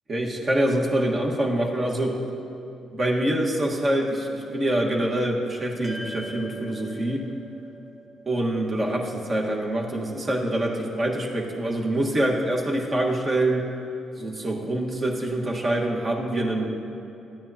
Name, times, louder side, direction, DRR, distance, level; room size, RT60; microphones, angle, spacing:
voice 1, 0.1-2.2 2.9-7.3 8.2-13.7 14.2-16.7, right 1 dB, 40° right, -1 dB, 1.4 m, -25 dB
sound 1, 5.8-10.3, right 1 dB, 20° right, 1.3 m, -43 dB
13.0 x 9.4 x 2.8 m, 2.8 s
supercardioid pair, 65°, 0 cm